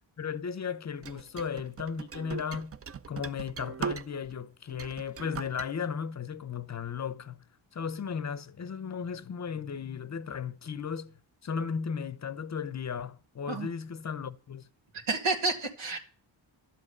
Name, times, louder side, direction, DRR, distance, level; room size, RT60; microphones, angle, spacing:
voice 1, 0.0-2.7 3.1-7.4 7.7-11.1 11.4-14.6, left 6 dB, 35° left, 0.7 m, -35 dB
sound 1, 1.0-4.4 4.7-5.7, right 6 dB, 30° right, 0.5 m, -39 dB
voice 2, 14.9-16.0, right 3 dB, 85° right, 2.1 m, -30 dB
11.5 x 7.5 x 6.5 m
cardioid pair, 75°, 48 cm